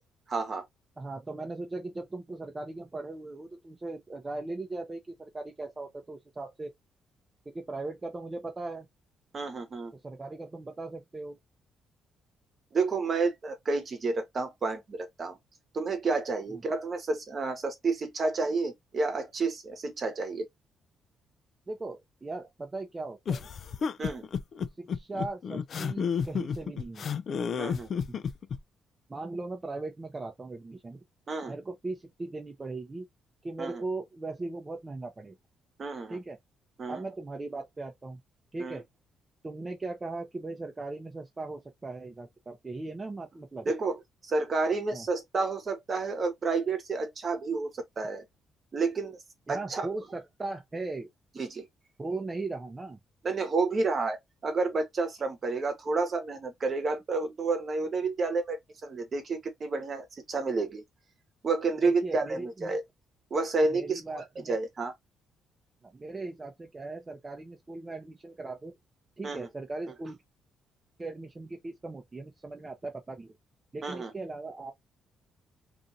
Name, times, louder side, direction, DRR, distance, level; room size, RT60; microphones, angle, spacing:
voice 1, 0.3-0.7 9.3-9.9 12.7-15.4 15.7-20.5 24.0-24.3 27.6-27.9 31.3-31.5 33.6-33.8 35.8-36.2 36.8-37.0 38.6-38.8 43.7-48.2 48.7-49.2 49.5-49.9 51.4-51.7 53.2-54.2 54.4-60.8 61.4-62.8 63.3-64.9 69.2-69.5 73.8-74.1, right 3 dB, 45° right, 1.0 m, -30 dB
voice 2, 1.0-6.7 7.5-8.9 9.9-11.4 16.5-16.6 21.7-23.5 24.8-27.1 28.1-28.2 29.1-31.0 31.5-33.1 33.4-35.3 36.1-36.4 36.9-38.2 38.5-38.8 39.4-43.7 44.9-45.1 49.5-51.1 52.0-53.0 61.8-62.8 63.7-64.6 65.8-68.7 69.2-70.2 71.0-73.3 73.7-74.7, right 2 dB, 25° right, 0.6 m, -38 dB
sound 1, 23.2-28.6, left 6 dB, 55° left, 0.3 m, -31 dB
2.6 x 2.5 x 2.6 m
cardioid pair, 90°, 0 cm